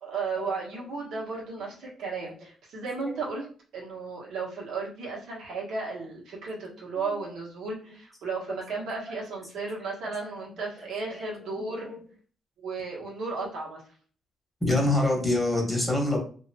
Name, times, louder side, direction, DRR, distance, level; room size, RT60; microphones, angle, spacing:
voice 1, 0.0-3.5 3.7-11.9 12.6-13.8, right 4 dB, 75° right, -4 dB, 1.4 m, -34 dB
voice 2, 11.1-12.0 14.6-16.2, left 2 dB, ahead, 0 dB, 1.4 m, -27 dB
2.8 x 2.5 x 2.8 m, 0.42 s
cardioid pair, 90°, 0 cm